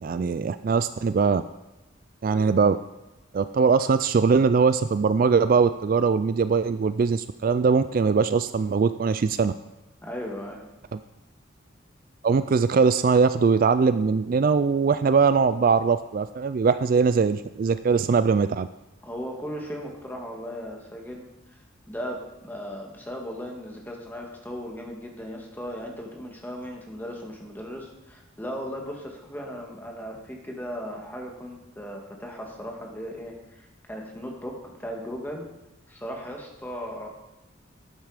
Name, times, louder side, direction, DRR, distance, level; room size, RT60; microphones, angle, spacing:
voice 1, 0.0-1.4 2.2-2.8 3.3-9.5 10.9-11.0 12.2-18.7, right 5 dB, 45° right, 12 dB, 0.3 m, -21 dB
voice 2, 10.0-10.7 19.0-21.3 21.9-35.5 35.9-37.1, equal, 10° left, 0 dB, 1.9 m, -37 dB
12.0 x 9.3 x 5.0 m, 1.0 s
head